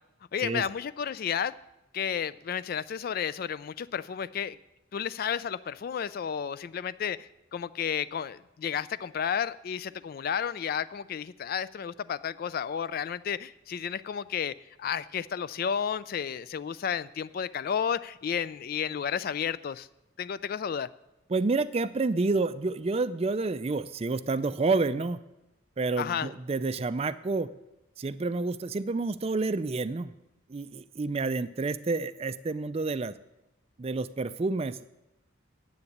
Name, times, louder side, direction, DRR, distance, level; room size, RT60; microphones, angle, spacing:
voice 1, 0.3-1.5 1.9-4.6 4.9-19.9 20.2-20.9 26.0-26.3, left 8 dB, 45° left, 17 dB, 0.3 m, -32 dB
voice 2, 21.3-25.2 25.8-27.5 28.0-30.1 30.5-33.2 33.8-34.8, right 3 dB, 30° right, 14 dB, 0.4 m, -29 dB
10.0 x 8.0 x 8.0 m, 0.96 s
head